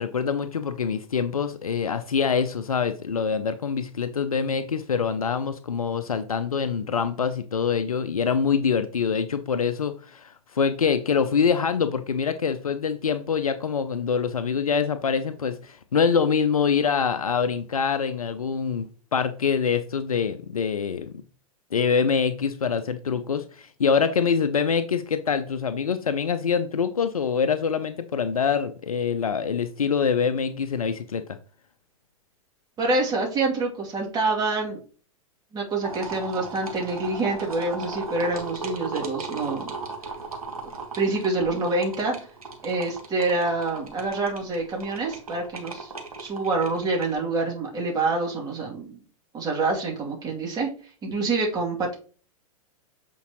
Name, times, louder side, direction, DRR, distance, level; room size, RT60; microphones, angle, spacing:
voice 1, 0.0-21.1 21.7-31.4, left 6 dB, 80° left, 10 dB, 0.5 m, -25 dB
voice 2, 32.8-34.8 35.5-39.7 40.9-42.1 42.6-45.9 46.2-49.0 49.3-50.7 51.0-51.9, right 3 dB, 20° right, -2 dB, 2.5 m, -26 dB
sound 1, 35.8-47.1, right 3 dB, 85° right, 1.5 m, -37 dB
8.1 x 4.5 x 3.0 m, 0.40 s
figure-of-eight pair, 100°, 18 cm